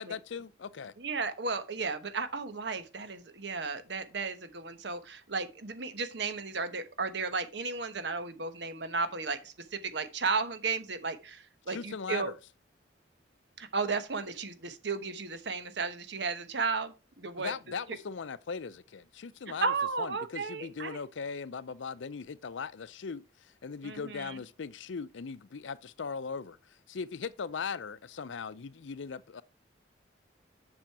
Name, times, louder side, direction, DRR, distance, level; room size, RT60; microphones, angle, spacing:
voice 1, 0.0-0.9 11.7-12.3 17.3-29.4, left 5 dB, 80° left, 0.5 m, -39 dB
voice 2, 1.0-12.3 13.6-17.5 17.9-18.0 19.6-21.0 23.8-24.4, right 4 dB, 70° right, 1.1 m, -34 dB
7.5 x 6.3 x 4.6 m
head